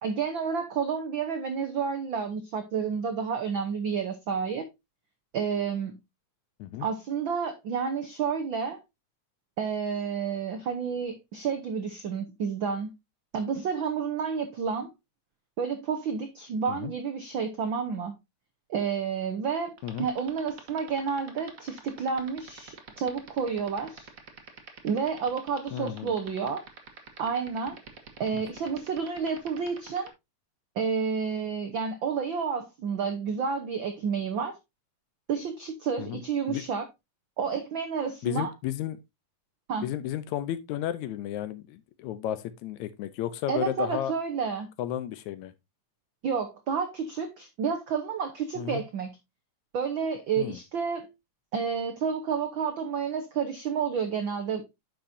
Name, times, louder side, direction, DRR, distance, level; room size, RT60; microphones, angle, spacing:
voice 1, 0.0-4.7 5.3-6.0 6.8-8.8 9.6-12.9 13.3-14.9 15.6-18.2 18.7-24.1 24.8-26.6 27.2-27.8 28.2-30.1 30.7-34.6 35.3-36.8 37.4-38.5 39.7-39.9 43.5-44.7 46.2-49.1 49.7-51.1 51.5-54.8, right 6 dB, 80° right, 1.1 m, -30 dB
sound 1, 19.8-30.1, right 7 dB, 50° right, 1.0 m, -45 dB
voice 2, 25.7-26.1 28.3-28.4 36.0-36.2 36.5-36.6 38.2-39.0 39.8-44.1 44.8-45.5 48.6-48.8 50.4-50.6, left 11 dB, 80° left, 1.9 m, -33 dB
10.0 x 6.2 x 2.7 m
omnidirectional pair, 3.6 m